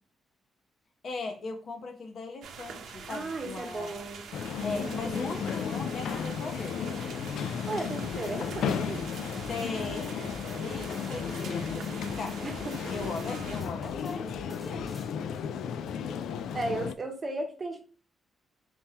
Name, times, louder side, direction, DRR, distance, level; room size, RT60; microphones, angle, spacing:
voice 1, 1.0-4.0 4.6-7.0 9.5-10.2 10.4-12.4 12.9-15.1, left 3 dB, 50° left, 4 dB, 0.9 m, -39 dB
sound 1, 2.4-13.6, right 6 dB, 85° right, 0.8 m, -45 dB
voice 2, 3.1-4.2 4.7-5.3 7.7-9.1 12.4-12.9 16.5-17.8, right 2 dB, 25° right, 2 dB, 1.1 m, -35 dB
sound 2, 4.3-16.9, left 7 dB, 85° left, 0.3 m, -34 dB
sound 3, 8.0-15.1, equal, 5° right, 1.3 m, -45 dB
4.3 x 3.6 x 2.9 m, 0.39 s
wide cardioid pair, 160°, 0 cm